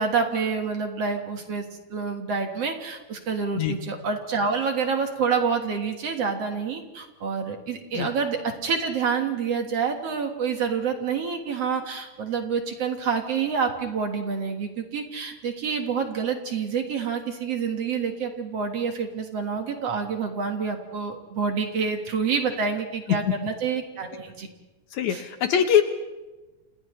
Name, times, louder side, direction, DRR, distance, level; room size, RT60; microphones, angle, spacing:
voice 1, 0.0-1.6 1.9-24.5 25.1-25.2, right 5 dB, 55° right, 4 dB, 2.4 m, -27 dB
voice 2, 24.9-25.8, left 9 dB, 70° left, 8 dB, 2.1 m, -22 dB
29.5 x 28.5 x 3.2 m, 1.1 s
omnidirectional pair, 3.8 m